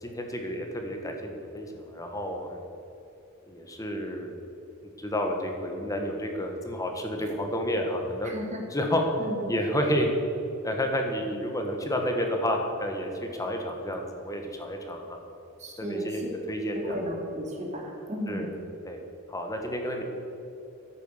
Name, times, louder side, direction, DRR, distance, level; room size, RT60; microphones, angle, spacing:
voice 1, 0.0-2.6 3.5-4.4 5.0-8.3 8.7-9.0 9.5-10.1 10.6-15.2 15.8-17.0 18.3-18.5 18.8-19.0 19.3-20.0, equal, 15° left, 3 dB, 1.5 m, -30 dB
voice 2, 8.2-8.6 9.2-9.4 15.6-16.3 16.7-18.5, equal, 35° right, 0 dB, 2.6 m, -34 dB
13.0 x 9.4 x 6.7 m, 2.8 s
head